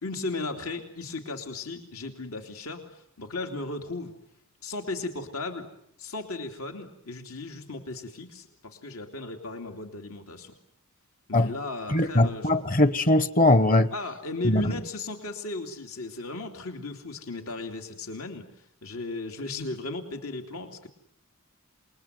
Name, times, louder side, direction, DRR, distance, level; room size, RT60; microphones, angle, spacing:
voice 1, 0.0-4.1 4.6-5.7 6.0-10.5 11.3-12.6 13.9-18.5 18.8-20.9, left 2 dB, 85° left, 2.9 m, -36 dB
voice 2, 11.9-13.9 14.4-14.7, left 1 dB, 40° left, 1.0 m, -21 dB
28.0 x 21.5 x 9.4 m
head